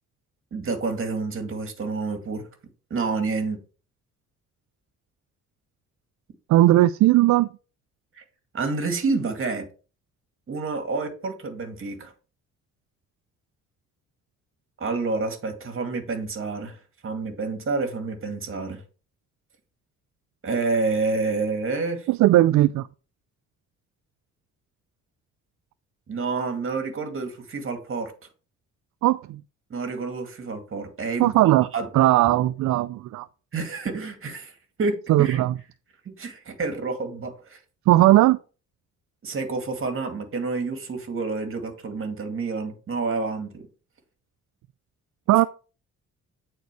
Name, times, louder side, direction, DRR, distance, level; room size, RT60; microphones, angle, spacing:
voice 1, 0.5-2.4 2.9-3.6 8.2-8.3 8.5-9.7 10.5-12.1 14.8-16.8 17.0-18.8 20.4-22.1 26.1-28.1 29.7-31.3 31.7-31.9 33.5-34.5 34.8-35.4 36.2-37.6 39.2-43.7, right 3 dB, 45° right, 2.2 m, -28 dB
voice 2, 6.5-7.5 22.1-22.9 29.0-29.4 31.2-31.7 31.9-33.3 35.1-35.6 37.9-38.4 45.3-45.4, right 15 dB, 70° right, 0.4 m, -18 dB
9.4 x 4.5 x 4.7 m
cardioid pair, 90°, 30 cm